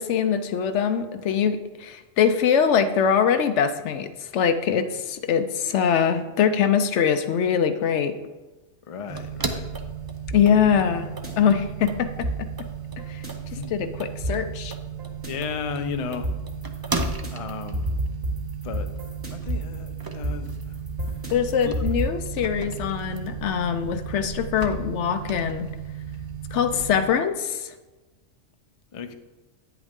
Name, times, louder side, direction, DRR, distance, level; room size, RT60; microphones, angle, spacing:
voice 1, 0.0-8.1 10.3-11.1 11.3-12.1 12.4-12.5 13.1-13.2 13.7-14.8 21.3-25.7 26.5-27.7, left 7 dB, 70° left, 10 dB, 0.9 m, -23 dB
voice 2, 8.9-9.7 13.5-13.7 15.2-16.3 16.8-17.0 17.3-17.9 18.6-18.9 19.3-20.8 21.7-21.8 28.9-29.1, left 6 dB, 45° left, 9 dB, 0.4 m, -34 dB
sound 1, 9.1-27.0, right 6 dB, 30° right, 0.4 m, -34 dB
sound 2, 10.3-11.3 12.2-13.3 14.2-15.3 16.2-22.1, right 1 dB, 50° right, 2.4 m, -31 dB
9.4 x 8.0 x 3.6 m, 1.2 s
omnidirectional pair, 1.3 m